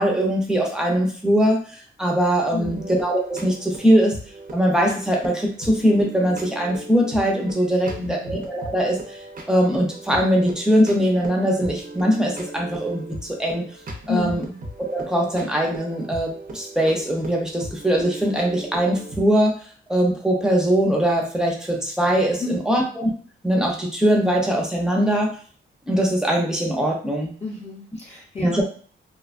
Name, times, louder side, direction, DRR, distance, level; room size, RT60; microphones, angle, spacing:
voice 1, 0.0-4.2 4.5-9.2 9.5-13.6 14.1-14.4 14.8-19.6 19.9-23.1 23.4-25.4 25.9-27.3 28.4-28.6, equal, 5° right, 0 dB, 0.6 m, -21 dB
voice 2, 2.5-2.9 7.8-8.4 14.1-14.6 22.4-22.9 27.4-28.6, left 3 dB, 30° left, -4 dB, 0.7 m, -31 dB
sound 1, 2.6-19.5, right 1 dB, 45° right, 0.6 m, -38 dB
2.8 x 2.2 x 2.4 m, 0.43 s
wide cardioid pair, 145°, 21 cm